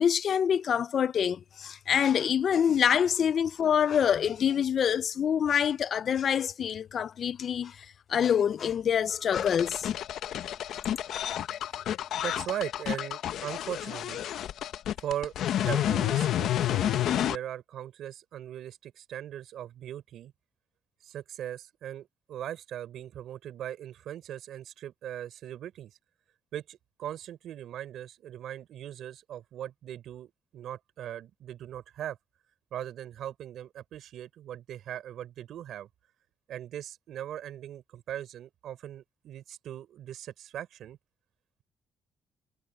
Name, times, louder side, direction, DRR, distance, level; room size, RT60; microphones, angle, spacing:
voice 1, 0.0-7.7 8.1-9.9 10.7-10.8, left 8 dB, 55° left, 0.5 m, -26 dB
sound 1, 9.4-17.4, left 11 dB, 75° left, 0.9 m, -30 dB
voice 2, 12.2-14.2 15.0-15.3 15.6-20.3 21.0-26.0 26.5-32.2 32.7-35.9 36.5-41.0, right 11 dB, 75° right, 4.6 m, -39 dB
cardioid pair, 90°, 0 cm